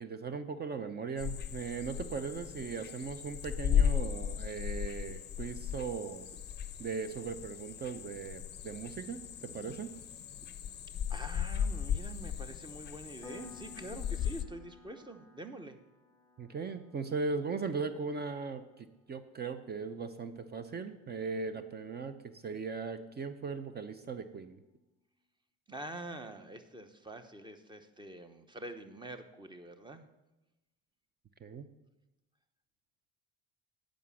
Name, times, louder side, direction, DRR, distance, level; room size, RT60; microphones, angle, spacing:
voice 1, 0.0-6.3 6.8-9.9 16.4-24.6 31.4-31.7, right 5 dB, 30° right, 11 dB, 0.6 m, -38 dB
sound 1, 1.2-14.4, left 9 dB, 30° left, 0.6 m, -36 dB
voice 2, 11.1-15.8 25.7-30.1, right 1 dB, 15° right, 9 dB, 0.9 m, -46 dB
Piano, 13.2-23.6, left 4 dB, 5° left, 0.9 m, -58 dB
9.4 x 5.1 x 7.1 m, 0.99 s
supercardioid pair, 90°, 32 cm